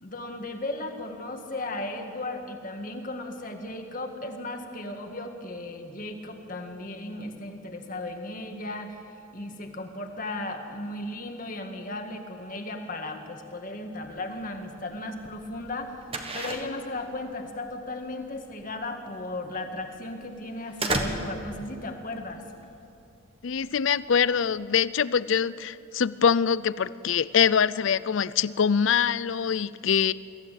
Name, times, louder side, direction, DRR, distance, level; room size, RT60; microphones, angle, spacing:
voice 1, 0.0-9.0 9.3-16.0 16.3-22.4, left 2 dB, 40° left, 4 dB, 1.9 m, -36 dB
sound 1, 14.0-24.7, right 2 dB, 25° right, 1.5 m, -37 dB
voice 2, 23.4-30.1, left 7 dB, 65° left, 18 dB, 0.5 m, -24 dB
23.0 x 15.5 x 9.2 m, 2.7 s
head